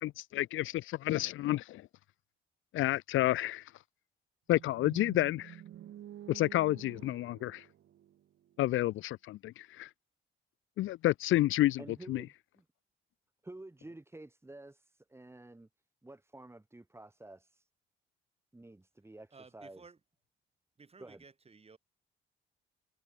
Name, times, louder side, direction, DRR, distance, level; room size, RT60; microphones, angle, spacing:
voice 1, 0.0-1.9 2.7-3.6 4.5-5.6 6.3-7.6 8.6-9.9 10.8-11.8 12.1-12.2, left 15 dB, 85° left, 1.1 m, -30 dB
sound 1, 4.5-8.6, right 11 dB, 70° right, 4.4 m, -50 dB
voice 2, 11.8-12.3 13.4-15.7 16.0-17.7 18.5-19.9 21.0-21.2, right 2 dB, 10° right, 3.7 m, -50 dB
voice 3, 19.3-20.0 20.8-21.8, right 4 dB, 30° right, 6.2 m, -55 dB
cardioid pair, 90°, 20 cm